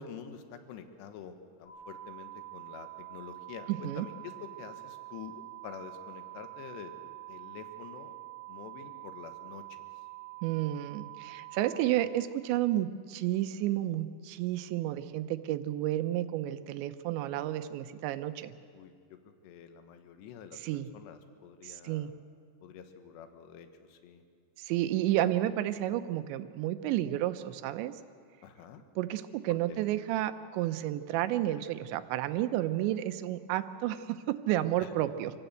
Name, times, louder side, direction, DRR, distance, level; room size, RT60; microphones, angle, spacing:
voice 1, 0.0-8.2 8.5-9.8 18.7-19.2 19.4-22.1 22.6-24.2 28.4-28.8 29.5-29.8 34.8-34.9, left 7 dB, 70° left, 7 dB, 3.2 m, -47 dB
sound 1, 1.7-11.7, right 19 dB, 85° left, 10.5 m, -46 dB
voice 2, 10.4-18.5 20.6-20.9 21.6-22.1 24.6-27.9 29.0-35.3, right 13 dB, 80° right, 10 dB, 2.9 m, -31 dB
26.5 x 16.5 x 8.0 m, 2.1 s
omnidirectional pair, 5.5 m